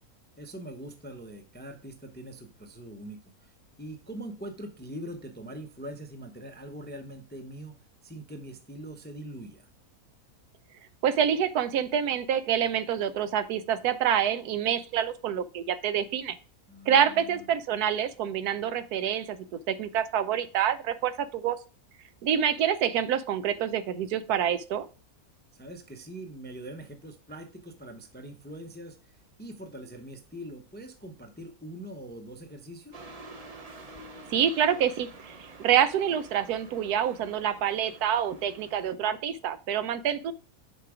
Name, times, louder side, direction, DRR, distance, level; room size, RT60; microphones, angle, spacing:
voice 1, 0.4-7.7 8.0-9.7 16.7-17.5 25.5-33.1, right 1 dB, 10° left, 6 dB, 0.4 m, -43 dB
voice 2, 11.0-16.4 16.9-21.6 22.2-24.9 34.3-40.3, right 9 dB, 85° right, 13 dB, 1.2 m, -27 dB
sound 1, 32.9-39.0, right 2 dB, 35° right, 0.7 m, -48 dB
6.6 x 4.7 x 4.9 m, 0.36 s
omnidirectional pair, 1.6 m